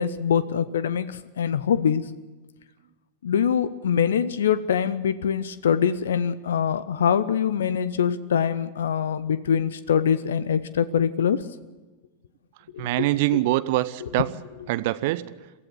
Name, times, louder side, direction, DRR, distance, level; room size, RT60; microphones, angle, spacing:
voice 1, 0.0-2.0 3.2-11.4 12.7-13.1, left 8 dB, 65° left, 17 dB, 0.6 m, -24 dB
voice 2, 12.8-14.3 14.7-15.3, right 17 dB, 50° right, 16 dB, 0.6 m, -24 dB
24.0 x 15.0 x 7.2 m, 1.2 s
figure-of-eight pair, 90°, 0 cm